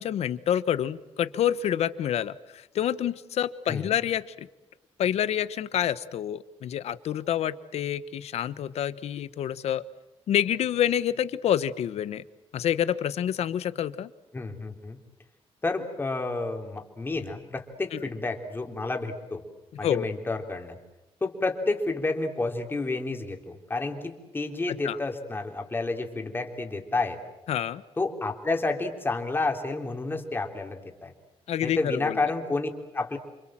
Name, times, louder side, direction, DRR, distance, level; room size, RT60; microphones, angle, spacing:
voice 1, 0.0-4.5 5.0-9.8 10.3-12.2 12.5-14.1 17.9-18.0 19.8-20.1 24.8-25.0 27.5-27.8 31.5-32.2, left 10 dB, 85° left, 15 dB, 1.2 m, -28 dB
voice 2, 14.3-15.0 15.6-19.4 19.8-20.8 21.2-27.2 28.0-31.1 31.6-33.2, left 3 dB, 20° left, 4 dB, 3.4 m, -30 dB
29.0 x 26.5 x 7.6 m, 0.97 s
wide cardioid pair, 140°, 11 cm